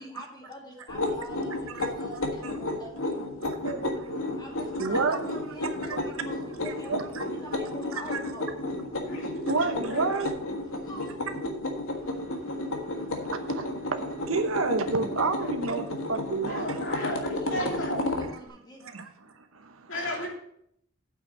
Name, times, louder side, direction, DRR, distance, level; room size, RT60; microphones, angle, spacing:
voice 1, 0.0-3.3 4.4-8.5 10.7-11.2 16.9-18.8, equal, 20° left, 2.1 m, -45 dB
sound 1, 0.9-18.3, left 2 dB, 85° left, 1.5 m, -32 dB
voice 2, 3.4-4.4 4.8-5.2 5.9-6.0 6.7-7.3 7.9-8.2 9.5-10.4 11.9-16.9 18.8-19.9, right 4 dB, 85° right, 1.0 m, -31 dB
voice 3, 8.9-10.1 15.4-15.6 16.4-18.1 19.9-20.3, left 1 dB, 65° left, 2.8 m, -34 dB
8.3 x 6.2 x 6.8 m
head